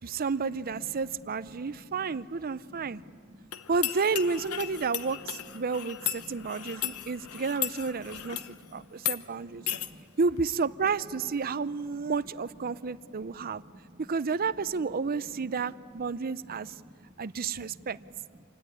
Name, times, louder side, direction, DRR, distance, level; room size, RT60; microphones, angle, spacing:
voice 1, 0.0-3.0 3.7-8.4 8.7-9.6 10.2-13.6 14.0-16.8 17.2-18.0, right 4 dB, 45° right, 0.5 m, -31 dB
voice 2, 0.6-1.1 1.5-2.2 2.8-3.5 6.3-7.4 7.9-9.0 9.5-10.1 11.9-12.0 12.6-12.7 13.1-14.0 14.6-14.9 15.6-15.7 16.1-17.1 17.6-17.9, equal, 25° right, 2.0 m, -52 dB
sound 1, 3.5-8.5 9.0-9.2 9.7-9.9, left 12 dB, 85° left, 1.0 m, -35 dB
27.0 x 17.0 x 9.9 m
head